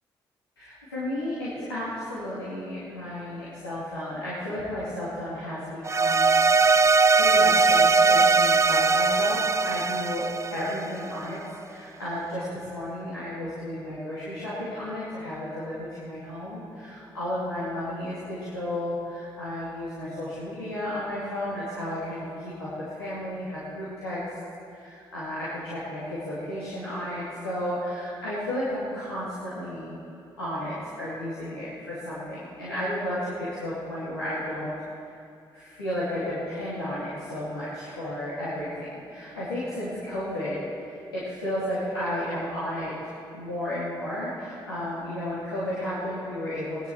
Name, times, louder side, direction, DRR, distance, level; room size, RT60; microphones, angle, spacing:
voice 1, 0.6-6.8 7.1-11.4 11.6-22.7 23.0-24.4 24.7-29.9 30.4-34.7 35.5-46.9, left 1 dB, 85° left, -11 dB, 2.5 m, -33 dB
sound 1, 5.9-11.2, right 4 dB, 25° right, 0.5 m, -20 dB
21.5 x 10.0 x 4.5 m, 2.6 s
figure-of-eight pair, 40°, 12 cm